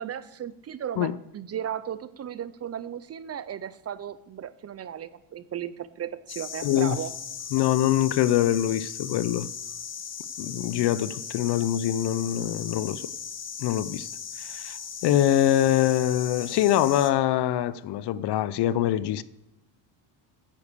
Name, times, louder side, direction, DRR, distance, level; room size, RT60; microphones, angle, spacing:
voice 1, 0.0-7.1, right 9 dB, 35° right, 0.5 m, -35 dB
sound 1, 6.3-17.1, left 7 dB, 35° left, 1.1 m, -38 dB
voice 2, 6.6-7.0 7.5-9.5 10.4-13.0 13.6-14.1 14.4-14.8 15.0-19.2, left 12 dB, 55° left, 0.6 m, -24 dB
9.9 x 8.3 x 6.8 m
cardioid pair, 120°, 47 cm